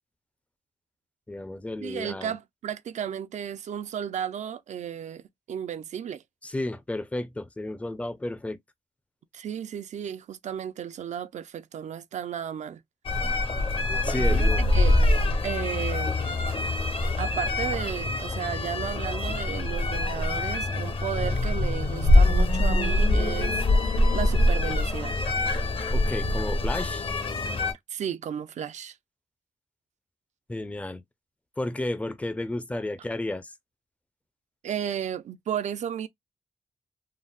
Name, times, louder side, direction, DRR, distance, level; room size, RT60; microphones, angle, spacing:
voice 1, 1.3-2.4 6.4-8.6 14.0-14.8 25.9-27.1 30.5-31.0 31.6-33.5, left 1 dB, 10° left, 0.4 m, -32 dB
voice 2, 1.8-6.2 9.3-12.8 14.2-15.0 15.4-16.2 17.2-23.8 24.1-25.2 27.9-29.0 34.6-36.1, right 9 dB, 75° right, 0.4 m, -34 dB
sound 1, 13.1-27.7, left 1 dB, 50° left, 0.8 m, -24 dB
3.8 x 2.0 x 2.2 m
wide cardioid pair, 115°, 12 cm